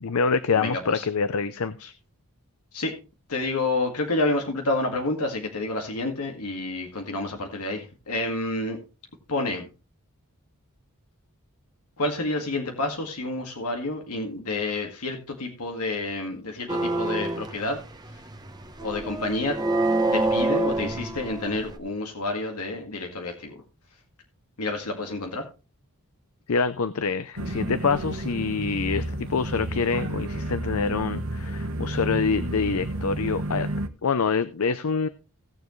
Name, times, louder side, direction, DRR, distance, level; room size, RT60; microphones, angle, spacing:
voice 1, 0.0-1.9 26.5-33.7 34.0-35.1, left 5 dB, 70° left, 0.6 m, -26 dB
voice 2, 0.6-1.1 2.7-2.9 3.3-8.8 9.3-9.7 12.0-17.8 18.1-18.2 18.8-19.6 20.1-23.5 24.6-25.5, left 2 dB, 85° left, 2.0 m, -29 dB
sound 1, 16.7-21.8, right 2 dB, 20° right, 1.0 m, -27 dB
sound 2, 27.4-33.9, right 1 dB, 65° right, 1.0 m, -31 dB
17.5 x 7.2 x 3.2 m
head